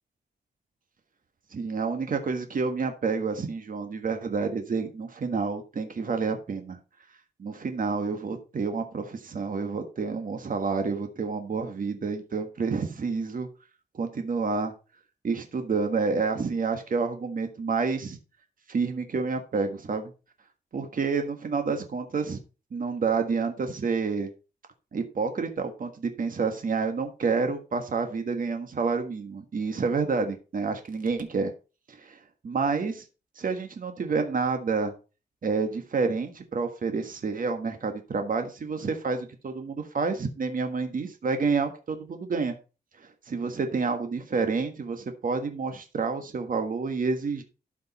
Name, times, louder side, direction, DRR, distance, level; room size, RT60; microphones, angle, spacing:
voice 1, 1.5-6.8 7.4-13.5 13.9-14.7 15.2-18.2 18.7-20.1 20.7-22.4 22.7-24.3 24.9-31.5 31.9-33.0 33.3-34.9 35.4-42.5 43.0-47.4, right 4 dB, 55° right, 6 dB, 1.5 m, -29 dB
12.5 x 5.2 x 4.2 m, 0.31 s
wide cardioid pair, 125°, 17 cm